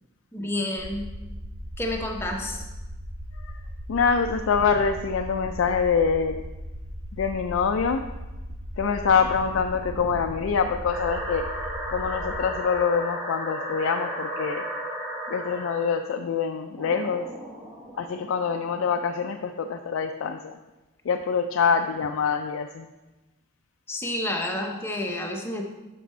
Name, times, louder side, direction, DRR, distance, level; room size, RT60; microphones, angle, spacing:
voice 1, 0.3-1.1 1.8-2.6 23.9-25.7, left 1 dB, 10° left, 1 dB, 0.7 m, -29 dB
sound 1, 0.8-12.4, equal, 50° right, 1.0 m, -38 dB
voice 2, 3.9-6.4 7.1-8.0 8.8-11.5 11.9-14.6 15.3-17.3 18.0-20.6 21.1-22.9, left 6 dB, 70° left, 5 dB, 0.3 m, -25 dB
sound 2, 10.9-15.9 16.8-19.2, equal, 10° right, 1.4 m, -34 dB
6.2 x 5.9 x 4.2 m, 1.1 s
head